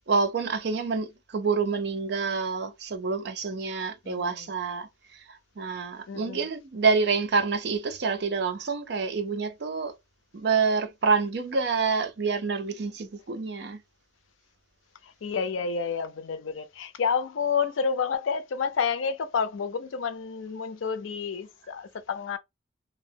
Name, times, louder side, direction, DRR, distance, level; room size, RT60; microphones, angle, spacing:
voice 1, 0.1-9.9 10.3-13.8, right 4 dB, 55° right, 0.5 m, -27 dB
voice 2, 4.0-4.4 6.1-6.5 15.0-22.4, left 6 dB, 85° left, 0.4 m, -29 dB
2.5 x 2.0 x 2.6 m
head